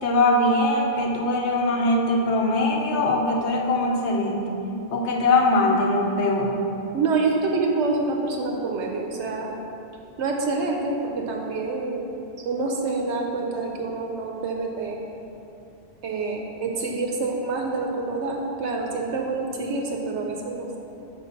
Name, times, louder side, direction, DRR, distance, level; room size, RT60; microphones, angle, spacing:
voice 1, 0.0-4.5 4.9-6.6, left 2 dB, 70° left, 1 dB, 1.0 m, -21 dB
voice 2, 6.9-9.5 10.2-12.1 12.4-15.0 16.0-20.8, right 3 dB, 75° right, 1 dB, 0.9 m, -27 dB
4.5 x 4.1 x 5.5 m, 2.9 s
omnidirectional pair, 1.2 m